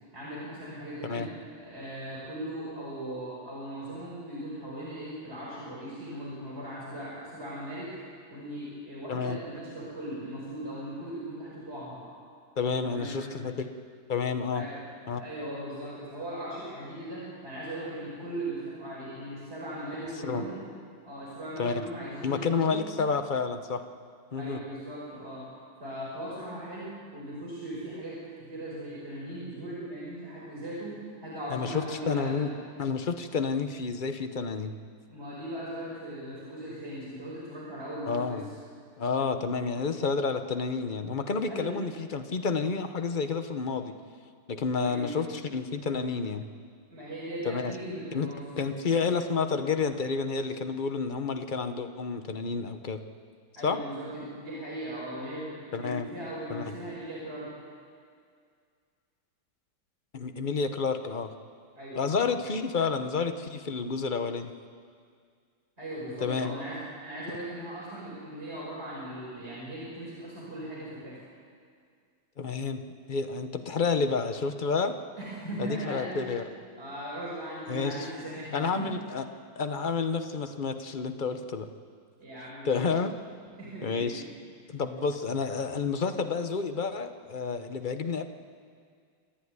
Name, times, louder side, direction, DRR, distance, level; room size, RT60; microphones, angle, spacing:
voice 1, 0.1-1.3 1.6-8.0 8.3-12.1 12.7-13.3 14.5-14.8 15.2-20.6 21.0-22.9 24.3-25.5 25.8-32.6 35.1-38.4 41.5-41.8 44.8-45.2 46.1-46.2 46.9-48.7 53.6-57.5 61.8-62.6 65.8-71.2 75.2-76.3 76.8-79.0 82.2-82.9 83.6-84.3, right 1 dB, 30° right, -8 dB, 5.9 m, -38 dB
voice 2, 12.6-13.7 14.1-14.6 15.1-15.2 20.2-20.4 21.6-21.8 22.2-23.8 24.3-24.6 31.5-32.5 32.8-34.7 38.1-38.4 39.0-43.9 44.5-46.4 47.4-47.7 48.1-48.3 48.6-53.0 53.6-53.8 55.7-56.1 56.5-56.6 60.1-61.3 61.9-64.5 66.2-66.5 72.4-72.8 73.1-75.0 75.6-76.4 77.7-78.1 78.5-79.2 79.6-81.7 82.6-83.1 83.8-84.2 84.7-88.2, left 5 dB, 40° left, 8 dB, 0.7 m, -30 dB
27.0 x 12.0 x 9.7 m, 2.1 s
omnidirectional pair, 2.2 m